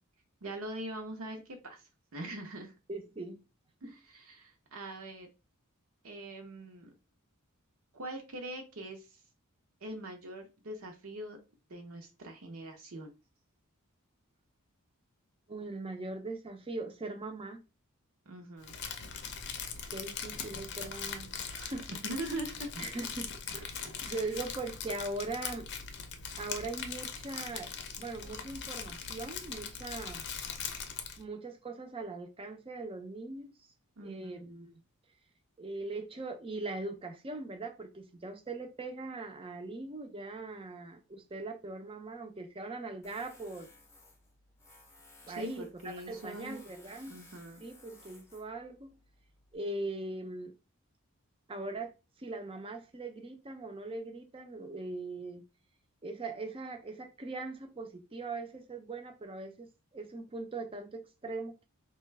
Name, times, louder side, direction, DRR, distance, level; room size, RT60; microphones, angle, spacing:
voice 1, 0.4-2.7 3.8-5.3 6.0-6.9 7.9-9.2 9.8-11.4 11.7-13.1 18.3-18.8 21.5-21.7 22.0-22.7 23.5-23.6 24.0-24.3 34.0-34.5 45.2-46.6 47.1-47.6, right 1 dB, 65° right, 0.7 m, -42 dB
voice 2, 2.9-3.4 3.8-3.9 15.5-17.6 19.9-21.9 22.8-23.8 24.1-25.7 26.4-27.7 28.0-30.2 31.2-33.5 34.0-34.7 35.6-43.7 45.3-47.2 47.6-49.0 49.5-50.5 51.5-51.9 52.2-55.4 56.0-59.7 59.9-61.7, right 2 dB, 25° right, 0.5 m, -40 dB
Crumpling crinkling, 18.6-31.2, left 6 dB, 50° left, 0.6 m, -41 dB
Tools, 43.0-49.6, left 2 dB, 10° left, 0.7 m, -58 dB
4.2 x 2.2 x 3.2 m
head